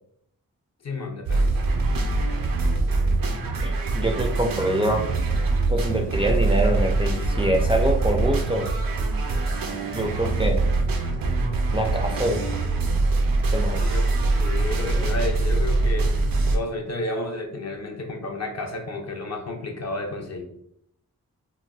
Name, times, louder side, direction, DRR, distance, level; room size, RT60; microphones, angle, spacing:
voice 1, 0.8-1.6 13.7-14.1 14.4-16.2 16.5-20.4, left 2 dB, 50° left, 2 dB, 0.7 m, -31 dB
sound 1, 1.3-16.6, right 2 dB, 75° right, 0.6 m, -23 dB
voice 2, 3.6-5.0 5.7-8.7 9.9-10.6 11.7-12.4 13.5-13.8, right 1 dB, 15° right, 2 dB, 0.4 m, -25 dB
4.0 x 2.2 x 2.2 m, 0.71 s
cardioid pair, 55°, 35 cm